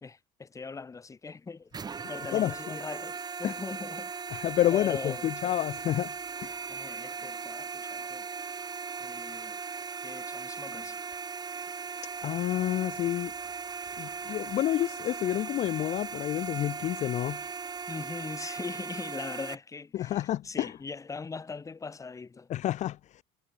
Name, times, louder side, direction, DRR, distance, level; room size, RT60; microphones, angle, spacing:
voice 1, 0.0-1.7 2.1-4.1 4.7-5.3 6.7-8.5 9.0-9.6 10.0-11.0 17.9-22.5, left 4 dB, 20° left, 2.8 m, -40 dB
sound 1, 1.7-19.6, right 5 dB, 25° right, 6.6 m, -38 dB
voice 2, 4.3-6.1 6.4-6.5 12.2-13.3 14.0-17.4 19.9-20.7 22.5-23.2, left 13 dB, 50° left, 0.8 m, -29 dB
cardioid pair, 120°, 16 cm